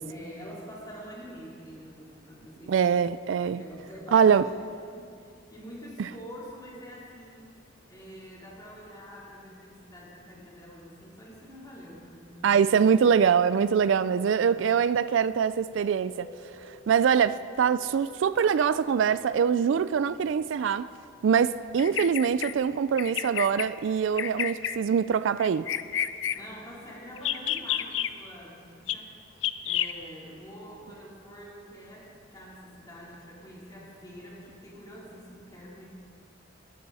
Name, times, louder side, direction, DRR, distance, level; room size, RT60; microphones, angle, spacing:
voice 1, 0.1-3.0 3.6-7.5 7.9-12.9 14.4-14.6 26.3-35.9, equal, 20° left, 3.6 m, -46 dB
voice 2, 2.7-3.6 4.1-4.4 12.4-16.3 16.7-20.9 21.2-25.7, right 7 dB, 70° right, 0.3 m, -23 dB
sound 1, 16.0-21.1, left 2 dB, 40° left, 1.8 m, -50 dB
Bird vocalization bird call bird song, 21.8-22.5 23.0-23.7 24.2-24.8 25.4-26.4 27.2-28.1 28.9-29.0 29.4-29.9, left 11 dB, 70° left, 0.5 m, -29 dB
20.0 x 11.5 x 4.1 m
head